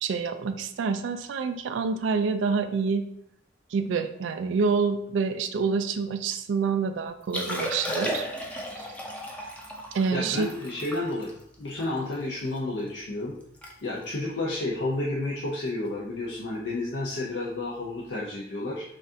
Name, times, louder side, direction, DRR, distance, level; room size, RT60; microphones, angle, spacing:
voice 1, 0.0-3.0 3.7-8.3 8.7-8.9 9.9-10.5, right 5 dB, 85° right, 8 dB, 0.3 m, -27 dB
Liquid, 7.2-12.6 13.0-13.1 13.4-13.7 14.0-14.2 14.8-15.1 16.5-16.6, equal, 5° left, 0.5 m, -35 dB
voice 2, 10.1-11.3 11.6-13.3 13.8-18.8, left 2 dB, 70° left, -4 dB, 0.6 m, -31 dB
5.9 x 2.4 x 2.7 m, 0.71 s
head